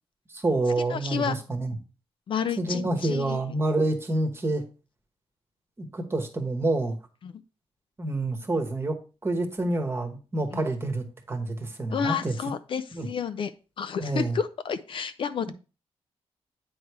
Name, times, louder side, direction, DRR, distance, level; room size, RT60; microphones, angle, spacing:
voice 1, 0.3-1.8 2.6-4.6 5.8-7.0 8.0-9.0 9.2-12.3 12.9-13.1 14.0-14.4, right 2 dB, 20° right, 4 dB, 1.1 m, -28 dB
voice 2, 0.9-1.4 2.3-3.4 7.2-7.3 10.5-10.7 11.9-13.5 13.8-15.5, left 7 dB, 50° left, 12 dB, 0.4 m, -30 dB
8.7 x 3.1 x 4.7 m, 0.32 s
wide cardioid pair, 150°, 11 cm